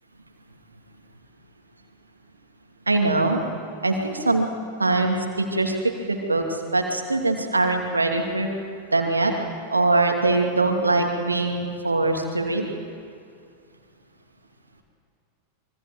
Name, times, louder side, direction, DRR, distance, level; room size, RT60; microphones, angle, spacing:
voice 1, 2.9-3.4 3.8-4.5 4.8-5.8 6.1-8.5 8.9-9.3 9.7-12.7, right 2 dB, 80° right, 3 dB, 2.6 m, -22 dB
26.0 x 23.0 x 7.8 m, 2.4 s
figure-of-eight pair, 90°, 0 cm